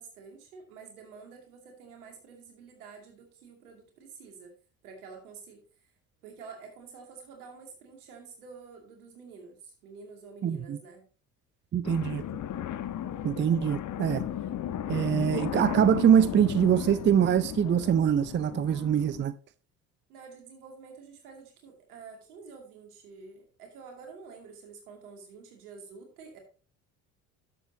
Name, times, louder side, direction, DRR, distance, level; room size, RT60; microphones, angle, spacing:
voice 1, 0.0-4.5 4.8-5.9 6.2-11.1 20.1-26.4, right 5 dB, 80° right, 2.6 m, -49 dB
voice 2, 10.4-10.8 11.7-12.2 13.2-14.2 14.9-19.3, right 9 dB, 25° right, 0.5 m, -24 dB
sound 1, 11.8-19.3, left 11 dB, 40° left, 0.9 m, -35 dB
11.5 x 7.3 x 2.8 m
hypercardioid pair, 55°, 44 cm